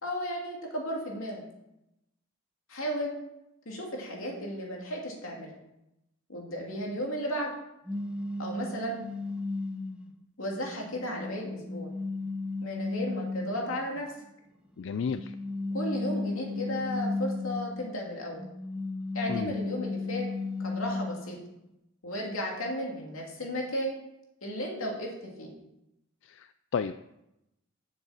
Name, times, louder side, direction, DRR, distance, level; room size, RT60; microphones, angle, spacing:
voice 1, 0.0-1.4 2.7-3.1 3.6-5.5 6.3-7.5 8.4-9.0 10.4-11.9 12.6-14.1 15.7-18.5 19.1-20.3 20.6-21.4 22.0-23.9 24.4-25.5, equal, 85° left, -1 dB, 2.8 m, -34 dB
sound 1, 7.9-10.1 10.7-13.8 14.9-17.9 18.4-21.3, left 3 dB, 5° right, 0.8 m, -34 dB
voice 2, 14.8-15.3 19.3-19.5 26.2-27.1, left 6 dB, 65° left, 11 dB, 0.3 m, -33 dB
7.7 x 6.7 x 7.3 m, 0.87 s
head